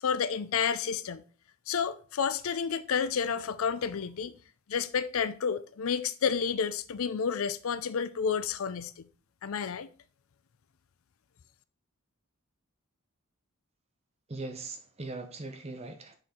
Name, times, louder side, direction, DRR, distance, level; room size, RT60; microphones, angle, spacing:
voice 1, 0.0-1.2 1.7-4.3 4.7-9.0 9.4-9.9, left 6 dB, 70° left, 0.5 m, -30 dB
voice 2, 14.3-16.2, right 3 dB, 30° right, 0.8 m, -40 dB
6.4 x 4.4 x 3.7 m
head